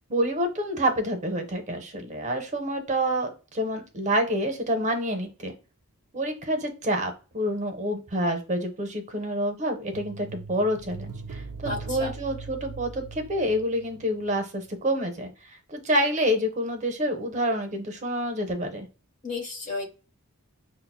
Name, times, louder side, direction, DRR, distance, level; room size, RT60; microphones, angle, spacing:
voice 1, 0.1-5.5 6.1-15.3 15.7-18.9, equal, 30° right, 5 dB, 0.6 m, -28 dB
sound 1, 9.9-14.4 14.6-14.7, right 4 dB, 80° right, 0.4 m, -40 dB
voice 2, 11.7-12.1 19.2-19.8, left 3 dB, 35° left, 1 dB, 0.9 m, -32 dB
5.6 x 2.0 x 2.3 m, 0.33 s
head